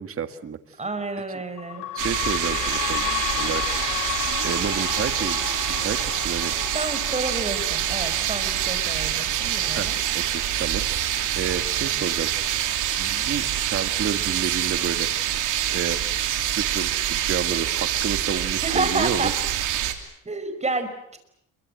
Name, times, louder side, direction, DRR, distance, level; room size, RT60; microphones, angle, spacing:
voice 1, 0.0-0.6 1.9-3.0 3.4-4.0 4.4-6.5 9.7-12.3 13.0-15.1 15.7-16.0 16.6-19.3, right 7 dB, 45° right, 9 dB, 1.9 m, -31 dB
voice 2, 0.8-1.8 6.7-10.0 18.6-19.3 20.3-20.9, right 3 dB, 20° right, 8 dB, 5.4 m, -29 dB
sound 1, 1.6-14.7 15.3-15.4 15.7-15.8 16.6-16.7, left 11 dB, 85° left, 3.2 m, -34 dB
sound 2, 2.0-19.9, right 11 dB, 85° right, 3.0 m, -26 dB
27.5 x 24.0 x 7.9 m, 0.76 s
cardioid pair, 90°, 30 cm